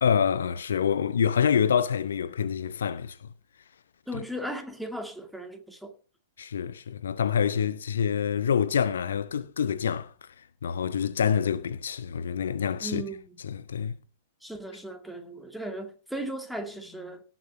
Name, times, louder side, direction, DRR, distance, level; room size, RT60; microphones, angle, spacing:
voice 1, 0.0-3.2 4.1-4.2 6.4-10.3 10.6-13.0 13.4-13.9, left 7 dB, 65° left, 0.8 m, -26 dB
voice 2, 4.1-5.9 12.8-13.2 14.4-17.2, right 1 dB, ahead, 2.2 m, -36 dB
18.0 x 6.2 x 5.3 m
figure-of-eight pair, 105°, 0 cm